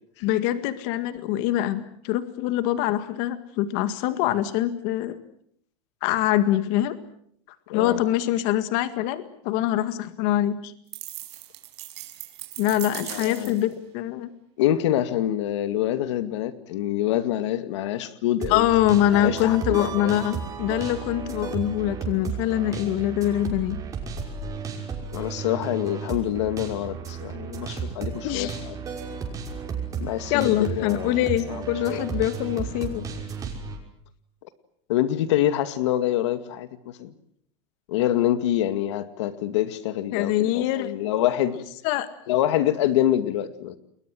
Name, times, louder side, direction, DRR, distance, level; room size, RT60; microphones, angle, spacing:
voice 1, 0.2-5.2 6.0-7.0 7.7-10.7 12.6-14.3 18.5-23.8 28.2-28.6 30.3-33.1 40.1-40.9 41.8-42.1, left 13 dB, 55° left, 11 dB, 1.9 m, -24 dB
sound 1, 10.9-13.7, right 16 dB, 80° right, 5.3 m, -38 dB
voice 2, 13.0-13.6 14.6-18.7 19.2-20.3 25.1-28.8 30.0-31.2 31.5-32.0 34.9-37.1 37.9-41.6 42.3-43.8, left 12 dB, 90° left, 11 dB, 2.2 m, -26 dB
sound 2, 18.4-33.8, right 6 dB, 25° right, 5.9 m, -34 dB
30.0 x 21.5 x 7.7 m, 0.68 s
supercardioid pair, 160°, 14 cm